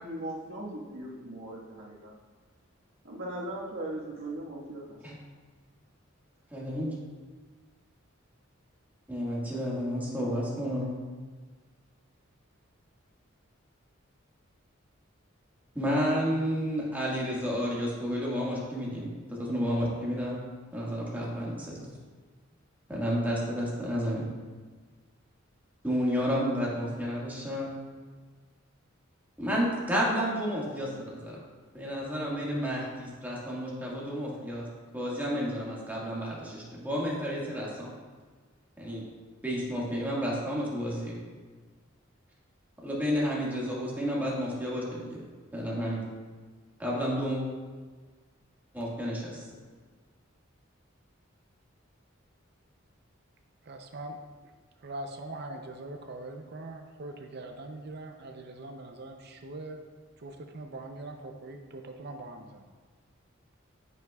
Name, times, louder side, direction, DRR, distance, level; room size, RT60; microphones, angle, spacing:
voice 1, 0.0-2.1 3.0-5.0, right 1 dB, 75° right, -4 dB, 1.6 m, -38 dB
voice 2, 6.5-6.9 9.1-10.9 15.7-20.4 20.7-21.7 22.9-24.3 25.8-27.7 29.4-31.4 31.7-34.6 34.9-37.9 38.8-39.0 39.4-41.2 42.8-45.2 45.5-46.0 46.8-47.4 48.7-49.4, equal, 10° right, -5 dB, 1.7 m, -31 dB
voice 3, 53.6-54.2 54.8-59.8 60.2-62.7, right 2 dB, 55° right, 4 dB, 0.6 m, -42 dB
9.1 x 8.2 x 2.3 m, 1.4 s
head